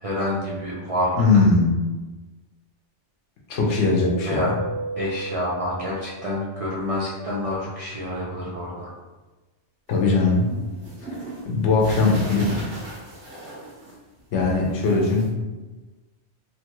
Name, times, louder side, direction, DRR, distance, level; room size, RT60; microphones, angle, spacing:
voice 1, 0.0-1.2 4.2-4.5 5.0-8.9, left 1 dB, 55° right, -6 dB, 0.3 m, -28 dB
voice 2, 1.2-1.8 3.5-4.5 9.9-10.5 11.4-12.7 14.3-15.3, left 3 dB, 80° left, -1 dB, 1.0 m, -20 dB
Keyboard (musical), 4.3-6.8, right 2 dB, 35° right, 1.2 m, -33 dB
sound 1, 9.9-14.2 14.5-15.3, right 1 dB, 75° right, 1.1 m, -37 dB
3.0 x 2.3 x 2.9 m, 1.2 s
omnidirectional pair, 1.2 m